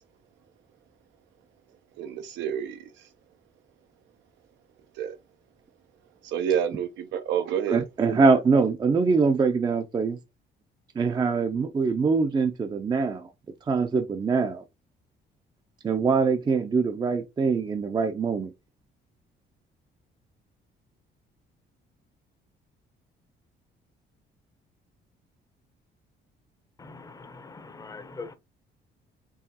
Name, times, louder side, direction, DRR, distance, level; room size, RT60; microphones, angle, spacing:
voice 1, 2.0-2.8 5.0-5.2 6.2-7.8, right 8 dB, 90° right, 0.6 m, -28 dB
voice 2, 7.7-10.2 11.0-13.3 13.7-14.6 15.8-18.5, right 4 dB, 25° right, 0.4 m, -23 dB
voice 3, 26.8-28.3, left 3 dB, 20° left, 0.6 m, -42 dB
4.6 x 3.0 x 2.8 m
cardioid pair, 145°, 19 cm